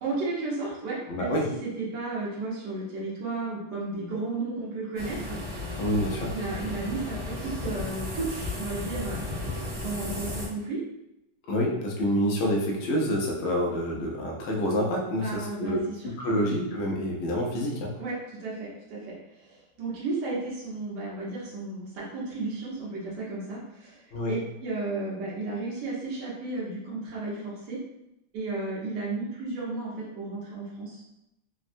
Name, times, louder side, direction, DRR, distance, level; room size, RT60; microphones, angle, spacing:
voice 1, 0.0-1.3 1.6-5.7 6.3-10.8 15.2-16.4 18.0-27.8 28.3-31.0, right 3 dB, 80° right, -5 dB, 1.4 m, -34 dB
voice 2, 1.1-1.4 5.8-6.3 11.5-17.9 24.1-24.3, equal, 65° left, -2 dB, 0.7 m, -27 dB
sound 1, 5.0-10.5, left 2 dB, 50° right, 1.2 m, -34 dB
3.5 x 2.1 x 2.5 m, 0.87 s
omnidirectional pair, 1.8 m